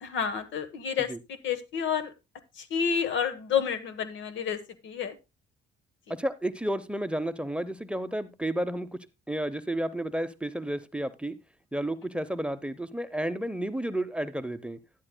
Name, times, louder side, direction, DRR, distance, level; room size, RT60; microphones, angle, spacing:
voice 1, 0.0-2.1 2.6-5.2, left 7 dB, 75° left, 12 dB, 1.3 m, -30 dB
voice 2, 6.1-9.0 9.3-11.4 11.7-14.8, right 1 dB, 5° right, 10 dB, 0.7 m, -31 dB
11.5 x 11.0 x 2.2 m, 0.25 s
cardioid pair, 90°, 20 cm